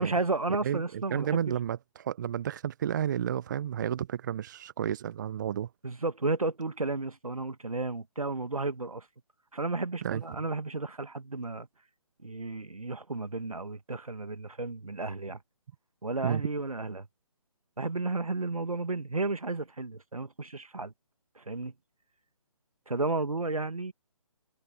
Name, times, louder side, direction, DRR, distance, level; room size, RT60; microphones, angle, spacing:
voice 1, 0.0-1.5 5.8-9.1 9.5-11.7 12.2-15.4 16.0-17.1 17.8-20.9 21.4-21.7 22.9-23.9, right 3 dB, 80° right, 1.9 m, -33 dB
voice 2, 0.6-5.7 10.0-10.2 16.2-16.4, right 10 dB, 35° right, 0.9 m, -32 dB
figure-of-eight pair, 145°, 18 cm